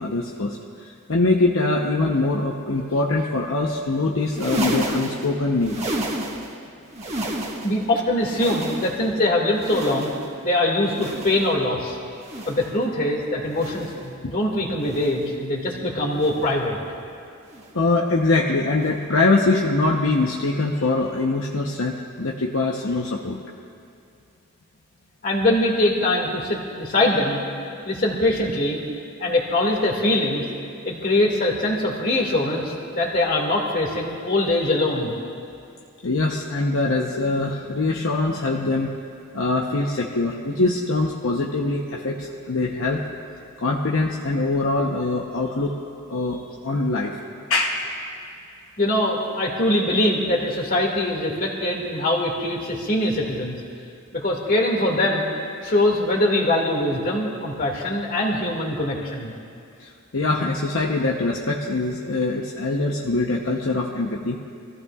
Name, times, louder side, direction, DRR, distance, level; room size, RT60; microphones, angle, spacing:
voice 1, 0.0-5.9 14.2-14.3 17.7-23.4 36.0-38.9 39.3-43.0 43.6-45.7 46.1-47.1 47.5-47.8 59.8-64.4, left 2 dB, 65° left, -1 dB, 0.9 m, -23 dB
sound 1, 4.2-6.6 6.9-7.9 8.2-9.2 9.5-10.4 10.8-11.6 12.1-12.8 13.5-14.1 14.8-15.4 16.1-16.6 17.5-17.8 18.8-19.0 20.1-20.2, right 1 dB, 30° right, 1.5 m, -31 dB
voice 2, 7.6-10.1 10.4-11.9 12.5-16.8 25.2-27.4 27.9-28.8 29.2-30.4 30.8-35.1 48.8-53.6 54.1-55.3 55.6-59.3, left 1 dB, 45° left, -1 dB, 2.2 m, -22 dB
25.5 x 15.0 x 2.4 m, 2.5 s
head